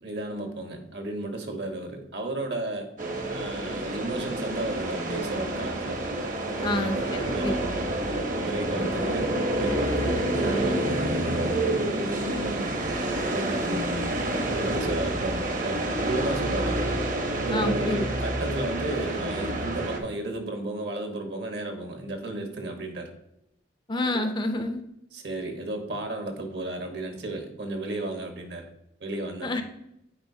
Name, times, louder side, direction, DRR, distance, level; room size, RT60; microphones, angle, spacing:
voice 1, 0.0-2.9 3.3-6.3 6.6-7.7 8.4-9.3 9.6-11.7 12.0-12.9 13.3-14.2 14.6-16.8 17.4-23.1 24.2-24.3 25.1-28.6 29.0-29.5, right 2 dB, 65° right, 4 dB, 1.2 m, -34 dB
sound 1, 3.0-20.0, right 1 dB, 45° right, 0.9 m, -28 dB
voice 2, 6.6-7.0 7.4-7.5 17.5-18.1 23.9-24.8 29.4-29.6, left 1 dB, 25° left, 6 dB, 0.5 m, -27 dB
8.8 x 4.9 x 2.7 m, 0.81 s
head